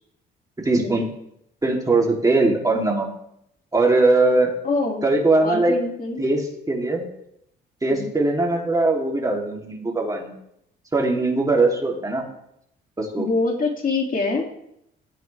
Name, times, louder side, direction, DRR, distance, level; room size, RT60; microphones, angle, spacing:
voice 1, 0.6-1.1 1.6-3.1 3.7-4.5 5.0-5.7 6.2-6.4 6.7-7.0 7.8-10.3 10.9-12.2 13.0-13.3, right 2 dB, 15° right, -1 dB, 3.4 m, -20 dB
voice 2, 4.6-5.1 5.4-6.2 7.9-8.1 13.2-14.5, left 3 dB, 45° left, 1 dB, 2.9 m, -25 dB
17.0 x 13.5 x 3.6 m, 0.77 s
cardioid pair, 90°, 20 cm